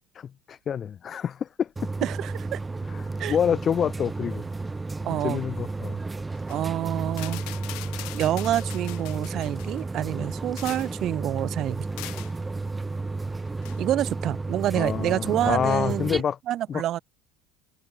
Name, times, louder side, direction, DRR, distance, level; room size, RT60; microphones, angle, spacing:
voice 1, 0.2-1.7 2.9-3.0 3.3-4.4 5.2-6.0 10.2-10.3 14.8-16.4 16.7-17.0, left 8 dB, 40° left, 0.5 m, -27 dB
sound 1, 1.1-2.2 2.5-9.5 9.8-11.4 11.8-15.3, left 4 dB, 25° left, 6.3 m, -64 dB
sound 2, 1.8-16.2, right 3 dB, 15° right, 0.8 m, -32 dB
voice 2, 2.0-2.6 3.2-3.4 5.0-5.4 6.5-7.4 8.1-11.9 13.8-16.1 16.5-17.0, right 12 dB, 55° right, 0.4 m, -27 dB
sound 3, 6.3-6.6 7.1-9.8 10.3-11.0 12.0-12.4 13.6-13.8, left 25 dB, 70° left, 0.9 m, -41 dB
hypercardioid pair, 80°, 0 cm